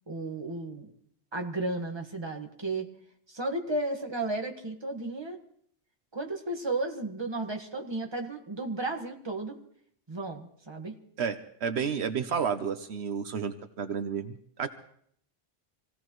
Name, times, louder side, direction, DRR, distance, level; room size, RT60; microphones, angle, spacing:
voice 1, 0.1-0.9 1.3-2.9 3.3-5.4 6.1-9.6 10.1-10.9, right 2 dB, 25° right, 3 dB, 1.6 m, -33 dB
voice 2, 11.2-14.7, right 6 dB, 75° right, 9 dB, 1.1 m, -31 dB
26.0 x 17.0 x 3.1 m, 0.66 s
omnidirectional pair, 1.1 m